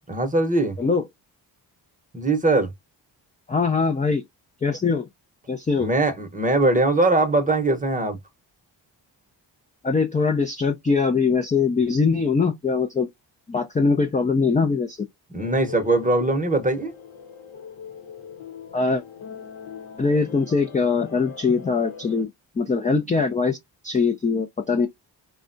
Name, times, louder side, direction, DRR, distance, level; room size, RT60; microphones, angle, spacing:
voice 1, 0.1-0.8 2.1-2.7 5.8-8.2 15.3-16.9, right 2 dB, 15° right, 0.8 m, -21 dB
voice 2, 3.5-4.2 4.6-5.1 5.5-5.9 9.8-13.1 13.5-15.1 18.7-19.0 20.0-22.3 22.6-23.6 23.8-24.9, left 4 dB, 20° left, 0.4 m, -22 dB
sound 1, 15.4-22.2, left 7 dB, 70° left, 0.9 m, -41 dB
3.4 x 2.2 x 2.5 m
supercardioid pair, 50°, 48 cm